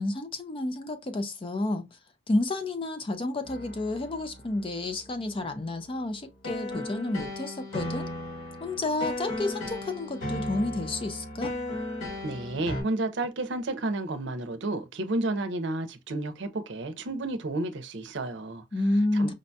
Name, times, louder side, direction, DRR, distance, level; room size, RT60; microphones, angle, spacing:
voice 1, 0.0-1.8 2.3-8.1 8.6-11.5 18.7-19.3, left 2 dB, 25° left, 0.4 m, -30 dB
sound 1, 3.4-12.8, left 1 dB, 85° left, 2.3 m, -36 dB
voice 2, 12.2-18.6 19.1-19.3, right 2 dB, 60° right, 0.6 m, -31 dB
5.1 x 2.2 x 2.6 m
head